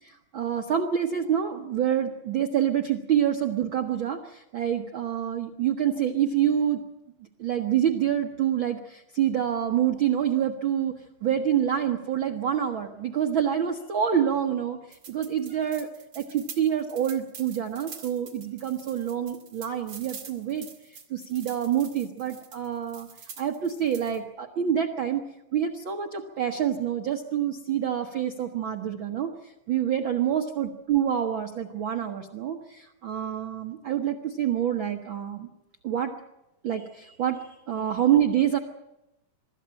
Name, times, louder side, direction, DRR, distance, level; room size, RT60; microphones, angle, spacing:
voice 1, 0.0-6.8 7.4-10.9 11.2-15.9 16.1-23.1 23.4-25.2 25.5-35.5 35.8-36.1 36.6-38.6, right 9 dB, 80° right, 4 dB, 1.1 m, -27 dB
sound 1, 14.9-24.2, right 6 dB, 45° right, 3.1 m, -46 dB
24.0 x 13.5 x 8.7 m, 0.91 s
omnidirectional pair, 3.9 m